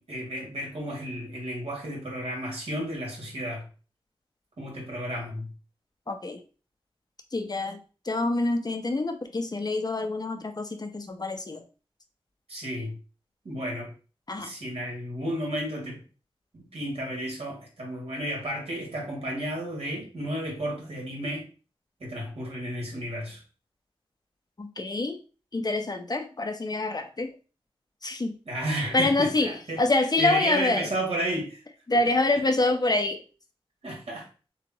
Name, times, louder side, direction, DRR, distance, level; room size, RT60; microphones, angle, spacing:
voice 1, 0.0-3.7 4.6-5.5 12.5-13.0 13.4-13.9 14.4-16.0 16.5-21.5 22.0-23.4 28.5-31.6 33.8-34.3, right 1 dB, 80° right, -2 dB, 2.1 m, -32 dB
voice 2, 6.1-6.4 7.3-7.8 8.0-11.6 14.3-14.5 24.6-25.2 25.5-27.3 28.0-28.3 28.9-30.9 31.9-33.2, left 2 dB, 40° left, 6 dB, 0.7 m, -26 dB
6.9 x 2.4 x 2.9 m, 0.35 s
wide cardioid pair, 80°, 10 cm